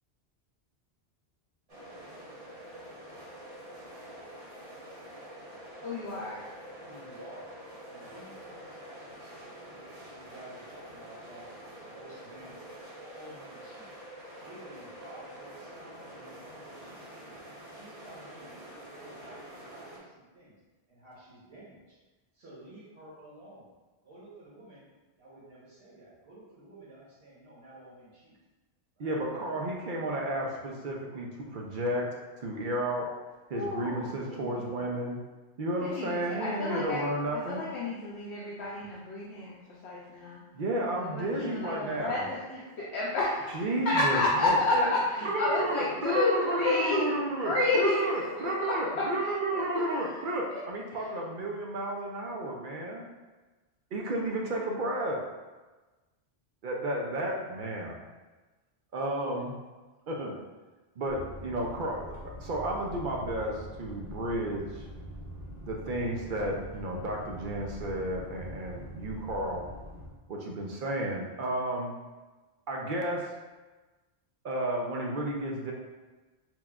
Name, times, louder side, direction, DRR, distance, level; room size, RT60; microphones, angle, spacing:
sound 1, 1.7-20.0, right 1 dB, 35° right, 1.0 m, -47 dB
voice 1, 5.8-6.4 33.5-34.8 35.8-37.0 37.3-39.6 39.8-40.4 40.9-42.4 42.9-48.1 48.4-48.8 49.2-49.8 50.1-50.2 50.5-50.6, left 2 dB, 85° left, -6 dB, 0.9 m, -30 dB
voice 2, 6.8-7.5 7.8-11.5 11.9-12.7 12.9-13.9 14.4-17.4 17.7-18.5 18.9-20.6 20.9-22.0 22.3-23.7 24.0-24.8 25.2-28.4 29.0-29.2 38.6-38.9 41.2-42.9 45.2-45.6 46.0-46.1, right 1 dB, 75° right, -8 dB, 1.4 m, -50 dB
voice 3, 29.0-33.2 33.5-35.2 35.6-37.6 40.5-42.3 43.5-44.9 45.2-53.1 53.9-55.2 56.6-58.0 58.9-59.5 60.1-60.4 61.0-64.8 65.6-69.6 70.3-71.9 72.7-73.3 74.4-75.7, right 1 dB, 60° right, -1 dB, 0.6 m, -32 dB
sound 2, 61.0-70.1, equal, 55° left, 1.1 m, -44 dB
5.8 x 2.3 x 2.3 m, 1.2 s
omnidirectional pair, 1.1 m